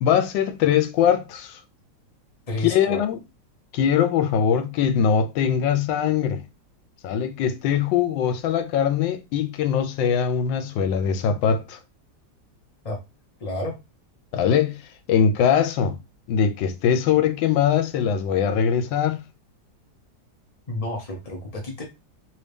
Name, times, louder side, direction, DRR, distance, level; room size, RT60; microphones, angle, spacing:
voice 1, 0.0-1.6 2.6-3.2 3.7-6.4 7.0-11.8 14.3-14.8 15.1-16.0 16.3-19.2, left 8 dB, 80° left, 1.3 m, -21 dB
voice 2, 2.5-3.0 12.8-13.0 13.4-13.8 20.7-21.8, left 2 dB, 60° left, 0.3 m, -30 dB
3.2 x 2.7 x 3.3 m
omnidirectional pair, 2.0 m